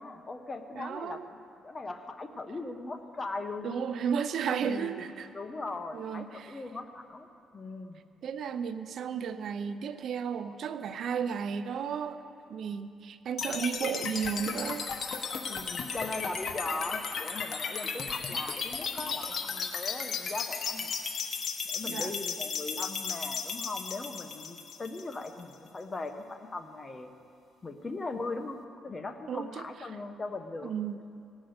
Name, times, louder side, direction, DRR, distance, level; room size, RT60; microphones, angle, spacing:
voice 1, 0.0-1.4 1.6-3.8 4.6-5.0 5.3-7.3 7.5-8.0 15.5-21.0 21.6-27.1 27.6-30.7, left 3 dB, 30° left, 7 dB, 1.1 m, -39 dB
voice 2, 0.7-1.3 3.6-5.3 5.9-6.6 8.2-14.9 21.8-22.1 29.3-29.7 30.6-31.0, right 7 dB, 65° right, 11 dB, 0.6 m, -34 dB
sound 1, 13.4-25.4, left 5 dB, 55° left, 1.1 m, -35 dB
18.5 x 6.2 x 8.0 m, 2.5 s
cardioid pair, 90°, 0 cm